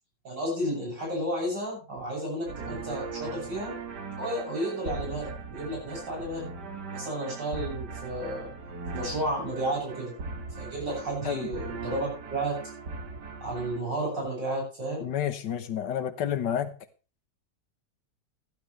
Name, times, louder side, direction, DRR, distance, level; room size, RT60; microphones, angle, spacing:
voice 1, 0.3-3.7 4.2-6.5 6.9-8.5 8.9-10.1 10.6-12.6 13.4-15.1, right 1 dB, 85° right, -3 dB, 8.6 m, -32 dB
sound 1, 2.5-13.8, right 4 dB, 70° right, 2.3 m, -39 dB
voice 2, 15.0-16.7, left 9 dB, 75° left, 12 dB, 1.7 m, -30 dB
15.5 x 12.0 x 3.3 m, 0.33 s
omnidirectional pair, 1.9 m